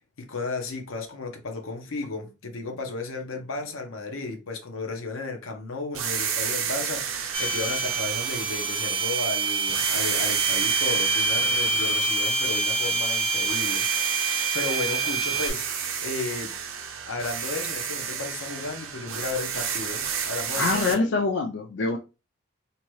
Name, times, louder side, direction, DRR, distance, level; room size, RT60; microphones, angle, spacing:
voice 1, 0.2-16.5 17.1-21.2, left 3 dB, 90° left, 0.7 m, -34 dB
sound 1, 5.9-9.2 9.7-13.1 13.4-20.9, right 7 dB, 90° right, 0.5 m, -32 dB
sound 2, 7.3-15.5, right 4 dB, 25° right, 0.5 m, -26 dB
voice 2, 20.6-22.0, left 3 dB, 60° left, 0.4 m, -24 dB
2.8 x 2.2 x 3.0 m
head